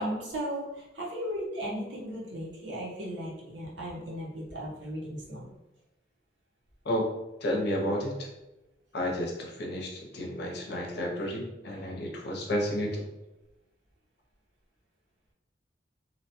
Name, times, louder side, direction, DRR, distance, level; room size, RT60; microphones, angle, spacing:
voice 1, 0.0-5.5 10.6-10.7, equal, 75° right, -4 dB, 0.9 m, -36 dB
voice 2, 7.4-8.3 8.9-13.0, equal, 65° left, 0 dB, 0.6 m, -31 dB
2.8 x 2.2 x 2.8 m, 0.98 s
head